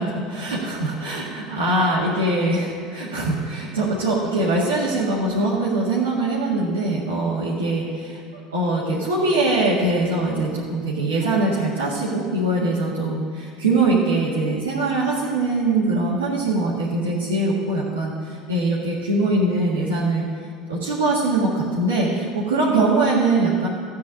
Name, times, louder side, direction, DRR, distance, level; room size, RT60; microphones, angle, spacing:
voice 1, 0.0-1.3 1.6-8.2 8.5-20.2 20.7-23.7, right 2 dB, 90° right, -7 dB, 1.9 m, -22 dB
13.5 x 4.7 x 8.7 m, 2.1 s
hypercardioid pair, 75°, 0 cm